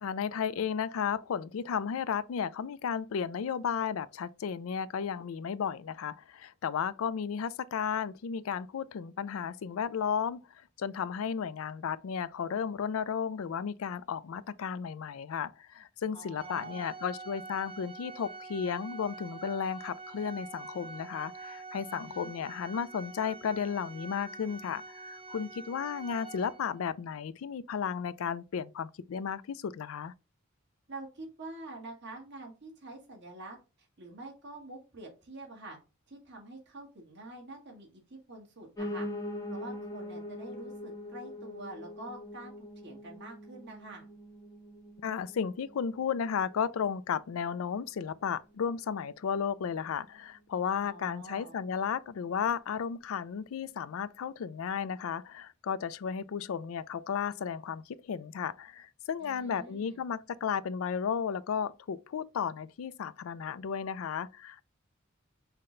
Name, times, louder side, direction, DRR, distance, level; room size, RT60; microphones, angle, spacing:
voice 1, 0.0-10.5 10.8-30.1 45.0-64.7, left 7 dB, 80° left, 0.4 m, -34 dB
voice 2, 16.1-16.9 21.9-22.3 30.9-33.6 34.0-35.8 36.1-39.1 39.5-44.1 50.8-51.5 59.2-60.0, right 2 dB, 55° right, 1.5 m, -46 dB
Organ, 16.4-27.0, right 3 dB, 25° right, 0.9 m, -46 dB
Piano, 38.8-47.9 48.3-49.4 49.7-49.8 50.0-50.1 50.4-50.5 51.0-51.1, left 1 dB, 15° left, 0.7 m, -43 dB
5.7 x 2.2 x 3.7 m
head